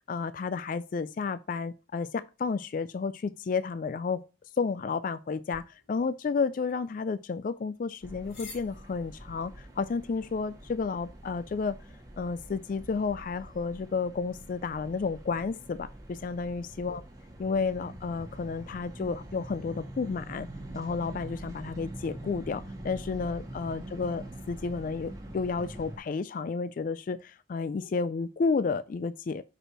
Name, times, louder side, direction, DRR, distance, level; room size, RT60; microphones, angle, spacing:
voice 1, 0.1-4.2 4.6-11.8 12.2-17.0 17.4-20.5 20.7-29.4, left 4 dB, 45° left, 0.3 m, -31 dB
sound 1, 5.5-12.0, left 4 dB, 70° left, 4.1 m, -55 dB
sound 2, 8.0-26.0, right 1 dB, 20° right, 1.8 m, -45 dB
6.2 x 5.3 x 6.1 m
head